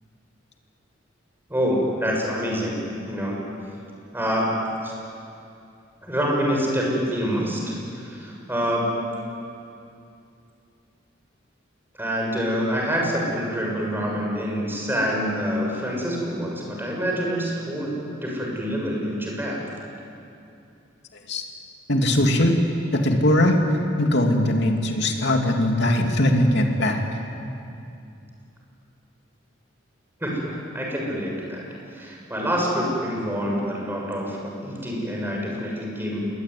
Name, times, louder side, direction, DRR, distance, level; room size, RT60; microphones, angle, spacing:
voice 1, 1.5-2.8 3.1-3.4 4.1-4.9 6.0-8.9 12.0-19.6 30.2-31.6 31.9-36.3, equal, 10° right, -2 dB, 6.8 m, -26 dB
voice 2, 21.9-22.6 22.9-23.6 24.0-27.2, left 1 dB, 65° left, 2 dB, 3.1 m, -20 dB
27.5 x 21.5 x 9.6 m, 2.6 s
head